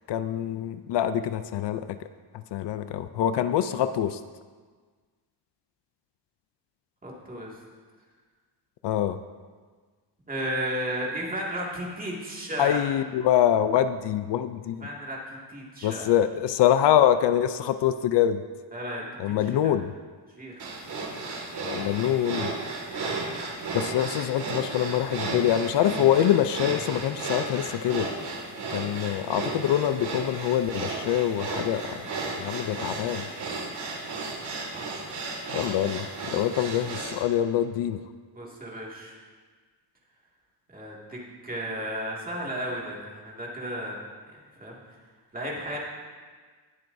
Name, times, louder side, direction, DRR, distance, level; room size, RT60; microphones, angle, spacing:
voice 1, 0.1-1.8 2.5-4.2 8.8-9.2 12.6-14.9 15.8-18.4 19.2-19.9 21.7-22.5 23.7-28.1 28.7-32.0 32.4-33.3 35.5-38.0, left 10 dB, 70° left, 11 dB, 0.5 m, -25 dB
voice 2, 7.0-7.5 10.3-12.8 14.8-15.2 15.5-16.1 18.7-19.6 20.4-20.7 38.3-39.2 40.7-44.0 44.6-45.0 45.3-45.8, right 1 dB, 20° right, -4 dB, 2.1 m, -34 dB
sound 1, 20.6-37.2, right 3 dB, 65° right, 2.1 m, -34 dB
19.0 x 7.7 x 2.7 m, 1.5 s
wide cardioid pair, 145°, 43 cm